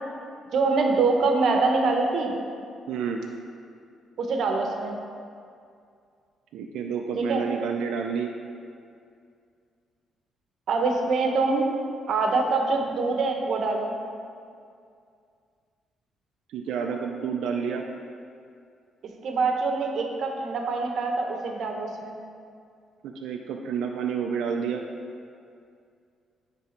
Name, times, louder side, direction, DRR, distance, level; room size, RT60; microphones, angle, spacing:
voice 1, 0.5-2.3 4.2-5.0 7.1-7.4 10.7-11.7 12.1-13.9 19.2-22.2, right 3 dB, 65° right, 2 dB, 0.8 m, -24 dB
voice 2, 2.9-3.3 6.5-8.3 16.5-17.8 23.0-24.8, right 6 dB, 85° right, 2 dB, 0.4 m, -29 dB
9.5 x 3.5 x 4.3 m, 2.3 s
cardioid pair, 90°, 0 cm